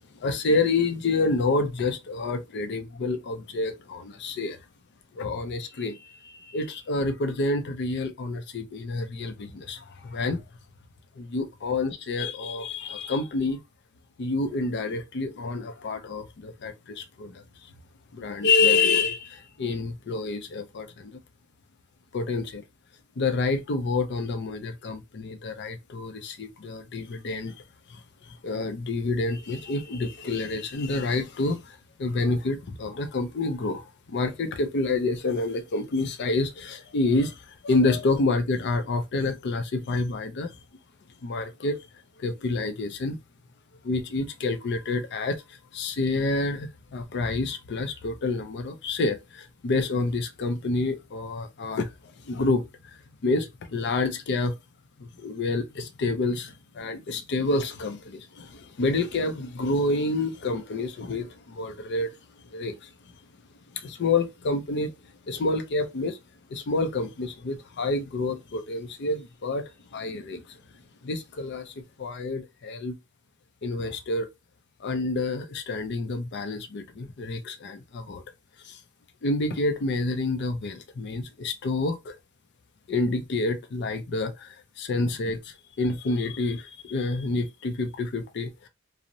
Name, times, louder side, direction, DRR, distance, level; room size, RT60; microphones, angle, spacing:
voice 1, 0.2-4.6 5.1-10.4 11.2-13.6 14.2-17.4 18.1-21.2 22.1-22.6 23.2-27.5 27.9-40.5 41.2-41.8 42.2-43.2 43.8-45.4 45.7-51.9 52.3-52.6 53.2-54.6 55.0-62.1 62.5-62.9 63.7-64.9 65.3-66.2 66.5-69.6 69.9-70.6 71.0-72.9 73.6-74.3 74.8-78.2 78.6-78.8 79.2-82.2 82.9-88.7, left 3 dB, 50° left, 0.4 m, -28 dB
2.5 x 2.0 x 2.8 m
head